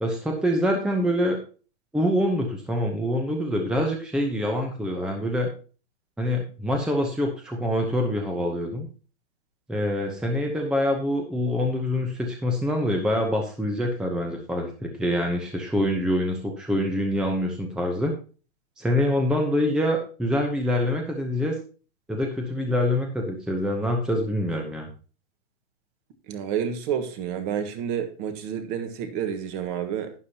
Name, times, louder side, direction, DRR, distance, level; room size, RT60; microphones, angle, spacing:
voice 1, 0.0-1.4 1.9-5.5 6.2-8.9 9.7-18.1 18.8-21.6 22.1-24.9, left 1 dB, ahead, 0.9 m, -25 dB
voice 2, 26.3-30.1, right 8 dB, 35° right, 1.6 m, -29 dB
12.0 x 9.6 x 2.9 m
hypercardioid pair, 145°, 36 cm